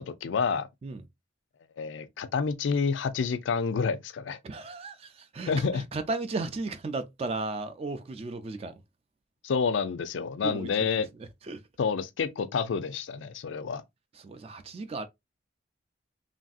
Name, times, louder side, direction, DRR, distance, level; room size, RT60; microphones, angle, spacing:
voice 1, 0.1-0.7 1.8-4.4 5.5-5.8 9.4-11.1 11.8-13.8, left 5 dB, 80° left, 0.4 m, -28 dB
voice 2, 4.4-8.7 10.4-10.9 11.2-11.6 14.1-15.1, right 3 dB, 30° right, 0.3 m, -35 dB
3.1 x 2.6 x 2.3 m
head